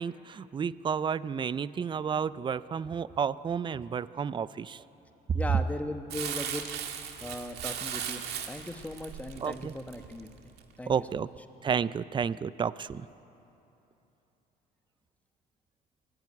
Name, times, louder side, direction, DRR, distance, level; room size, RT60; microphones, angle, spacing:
voice 1, 0.0-4.8 5.3-5.6 9.4-9.7 10.9-11.3 11.6-13.1, right 7 dB, 30° right, 17 dB, 0.5 m, -31 dB
voice 2, 5.3-6.7 7.2-10.5 10.8-10.9, left 1 dB, 10° left, 7 dB, 1.3 m, -38 dB
Crumpling crinkling, 6.1-10.6 11.1-11.2, right 9 dB, 75° right, 1.9 m, -37 dB
23.0 x 17.0 x 9.8 m, 2.9 s
cardioid pair, 110°, 17 cm